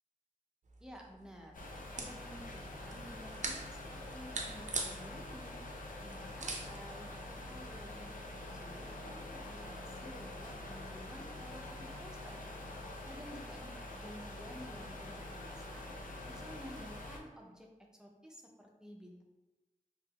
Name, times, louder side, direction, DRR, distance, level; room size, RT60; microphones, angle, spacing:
sound 1, 0.7-7.9, right 3 dB, 60° right, 0.4 m, -45 dB
voice 1, 0.8-1.6 1.9-5.6 6.0-8.3 8.6-12.5 13.1-15.8 16.2-17.7 18.0-19.2, equal, 5° right, 0 dB, 0.5 m, -52 dB
sound 2, 1.5-17.2, left 1 dB, 75° left, 0.4 m, -46 dB
3.2 x 2.8 x 2.2 m, 1.1 s
wide cardioid pair, 65°, 14 cm